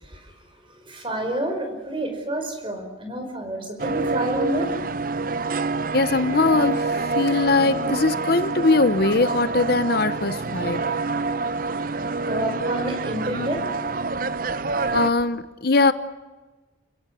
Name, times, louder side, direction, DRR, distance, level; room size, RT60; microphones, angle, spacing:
voice 1, 0.6-4.7 11.8-13.7, right 1 dB, 25° right, 5.0 m, -29 dB
sound 1, 3.8-15.1, right 3 dB, 45° right, 0.7 m, -27 dB
voice 2, 5.9-10.8 14.9-15.9, left 3 dB, 55° left, 0.9 m, -21 dB
29.5 x 17.0 x 9.4 m
head